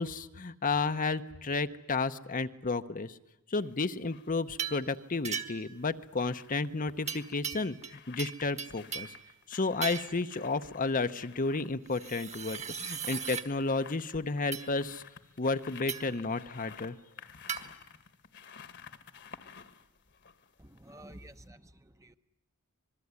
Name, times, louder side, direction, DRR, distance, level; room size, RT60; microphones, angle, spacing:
voice 1, 0.0-3.2 3.5-9.1 9.5-15.0 15.4-17.0, left 3 dB, 40° left, 10 dB, 0.9 m, -32 dB
sound 1, 3.6-4.3 5.6-21.1 21.4-21.5, left 7 dB, 55° left, 1.6 m, -53 dB
sound 2, 4.6-4.9 5.2-5.7 7.1-9.2 9.8-10.2 11.9-13.5 14.5-14.7 15.9-16.2 17.5-17.6, right 7 dB, 35° right, 1.5 m, -37 dB
voice 2, 20.6-22.2, right 1 dB, 15° right, 9 dB, 0.9 m, -51 dB
26.0 x 21.5 x 9.7 m, 0.95 s
head